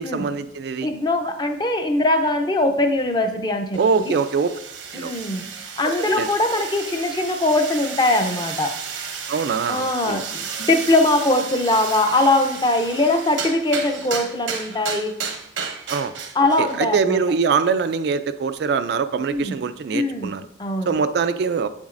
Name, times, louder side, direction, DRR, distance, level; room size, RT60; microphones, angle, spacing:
voice 1, 0.0-0.9 3.8-4.5 4.9-5.1 5.8-6.3 9.3-10.2 15.9-16.2 16.6-20.4 20.9-21.7, right 5 dB, 55° right, 11 dB, 0.3 m, -23 dB
voice 2, 0.8-4.2 4.9-5.5 5.8-8.7 9.7-15.1 16.3-17.2 19.3-19.6 19.9-20.3 20.6-20.9, left 2 dB, 20° left, 5 dB, 0.5 m, -21 dB
sound 1, 3.7-16.9, right 6 dB, 85° right, 0.9 m, -33 dB
7.8 x 7.2 x 2.5 m, 0.74 s
head